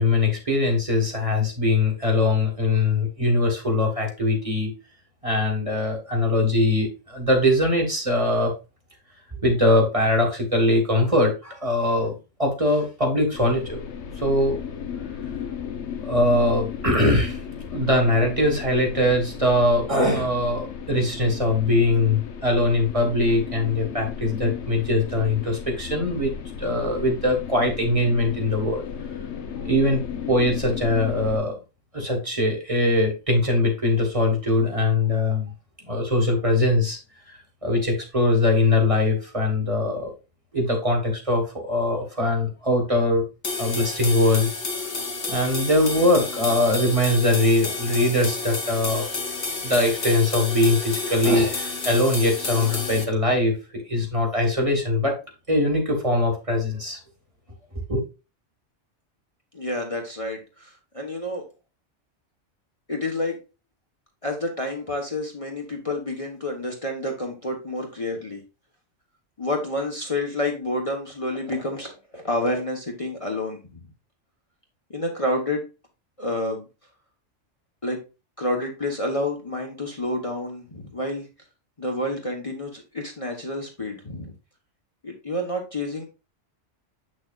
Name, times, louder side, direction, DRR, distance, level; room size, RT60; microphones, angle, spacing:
voice 1, 0.0-4.7 5.2-8.5 9.4-13.8 14.2-14.6 16.0-17.4 17.7-28.8 29.6-30.0 30.3-31.5 31.9-35.5 35.9-37.0 37.6-40.1 40.5-43.2 43.6-44.5 45.3-49.1 49.6-55.1 55.5-57.0 57.9-58.0, left 2 dB, 30° right, 1 dB, 1.7 m, -22 dB
sound 1, 13.3-31.4, left 7 dB, 70° left, 1.1 m, -35 dB
sound 2, 43.4-53.1, left 3 dB, 50° left, 1.5 m, -30 dB
voice 2, 59.5-61.4 62.9-63.4 64.2-68.4 69.4-73.6 74.9-75.6 76.2-76.6 77.8-78.0 78.4-81.3 81.8-84.3 85.0-86.0, left 1 dB, 30° left, 1 dB, 1.1 m, -29 dB
7.7 x 6.4 x 2.4 m, 0.29 s
omnidirectional pair, 1.2 m